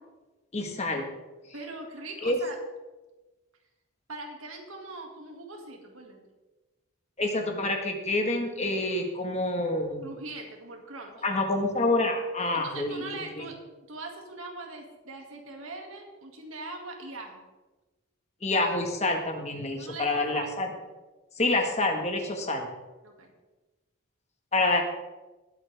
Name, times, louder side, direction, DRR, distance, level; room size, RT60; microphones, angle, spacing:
voice 1, 0.5-1.1 2.2-2.4 7.2-10.1 11.2-13.0 13.4-13.5 18.4-20.7 21.4-22.7 24.5-24.8, left 2 dB, 30° left, 3 dB, 1.5 m, -27 dB
voice 2, 1.5-2.6 4.1-6.2 10.0-11.1 12.5-13.6 13.9-17.4 19.8-20.6 23.0-23.3, right 2 dB, 80° right, 2 dB, 2.2 m, -41 dB
20.0 x 8.2 x 3.5 m, 1.2 s
head